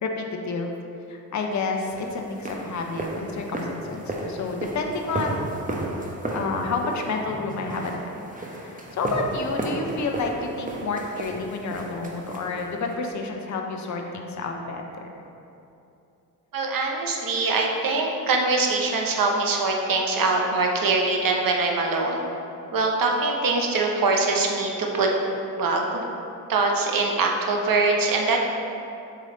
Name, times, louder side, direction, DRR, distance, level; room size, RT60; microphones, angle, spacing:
voice 1, 0.0-0.8 1.1-5.5 6.3-15.1, left 3 dB, 40° left, 2 dB, 0.8 m, -30 dB
sound 1, 1.9-13.0, right 1 dB, 15° right, 1.0 m, -33 dB
voice 2, 16.5-22.2 22.7-25.1 25.5-26.0 26.5-28.4, right 3 dB, 45° right, 1 dB, 1.0 m, -23 dB
7.5 x 3.2 x 3.9 m, 2.8 s
hypercardioid pair, 45°, 47 cm